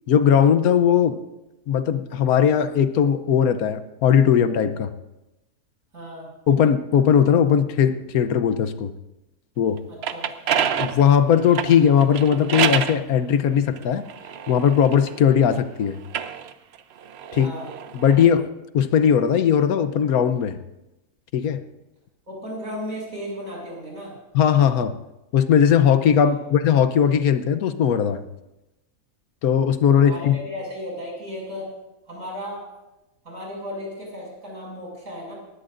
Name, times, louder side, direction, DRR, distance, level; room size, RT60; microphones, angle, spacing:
voice 1, 0.1-1.2 1.7-4.9 6.5-8.9 9.6-9.8 10.8-14.0 14.5-16.0 17.3-17.5 17.9-18.5 18.7-20.6 21.3-21.6 24.3-24.9 25.3-28.2 29.4-30.4, left 8 dB, 85° left, 11 dB, 1.3 m, -18 dB
voice 2, 5.9-6.3 9.9-10.4 17.4-17.7 22.3-24.2 26.2-26.4 30.0-31.7 32.1-32.7 33.2-35.3, equal, 75° right, -3 dB, 7.0 m, -35 dB
sound 1, 9.8-13.0 13.8-15.4 16.0-18.3, right 8 dB, 55° right, 0.8 m, -28 dB
20.5 x 16.0 x 2.6 m, 0.96 s
omnidirectional pair, 1.5 m